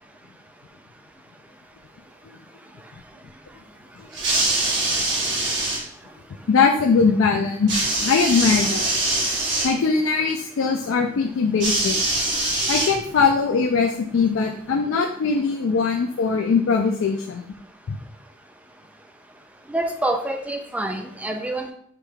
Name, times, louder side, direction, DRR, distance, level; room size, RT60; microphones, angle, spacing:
sound 1, 4.1-5.8 7.7-9.7 11.6-13.3 14.3-14.4, right 2 dB, 55° right, 1.5 m, -23 dB
voice 1, 6.5-7.7 8.0-8.9 9.6-12.0 12.7-17.4 17.9-18.0, left 5 dB, 70° left, 3 dB, 0.4 m, -21 dB
voice 2, 19.7-21.7, right 1 dB, 5° right, 5 dB, 0.3 m, -26 dB
5.0 x 2.3 x 4.5 m, 0.67 s
head